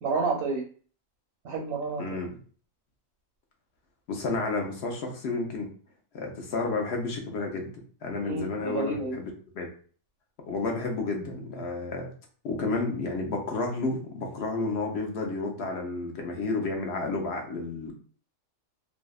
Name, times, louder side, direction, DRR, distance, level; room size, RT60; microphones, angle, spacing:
voice 1, 0.0-0.6 1.4-2.2 8.2-9.2, right 3 dB, 90° right, -1 dB, 1.0 m, -30 dB
voice 2, 2.0-2.3 4.1-5.7 6.1-7.7 8.0-9.7 10.5-12.1 12.4-17.9, left 3 dB, 60° left, 2 dB, 0.8 m, -31 dB
2.6 x 2.1 x 2.3 m, 0.42 s
omnidirectional pair, 1.4 m